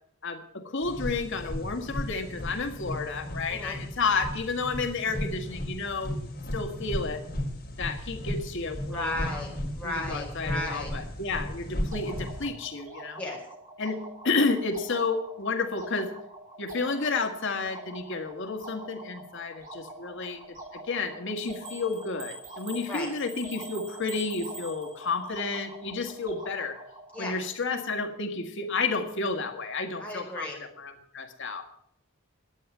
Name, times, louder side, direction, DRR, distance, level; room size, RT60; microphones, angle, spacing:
voice 1, 0.2-7.2 7.8-9.4 9.8-13.2 13.8-16.1 16.6-20.4 20.9-26.8 27.2-30.5 30.8-31.6, left 4 dB, 60° left, 5 dB, 1.8 m, -31 dB
sound 1, 0.8-12.4, left 1 dB, 45° left, 4.6 m, -35 dB
voice 2, 3.5-3.8 8.9-10.9 13.2-13.4 22.9-23.1 27.1-27.3 30.0-30.6, left 2 dB, 5° left, -3 dB, 5.0 m, -34 dB
sound 2, 11.9-27.3, right 1 dB, 40° right, 6.0 m, -46 dB
sound 3, 21.4-25.3, right 3 dB, 60° right, 5.0 m, -45 dB
12.0 x 9.6 x 9.4 m, 0.70 s
head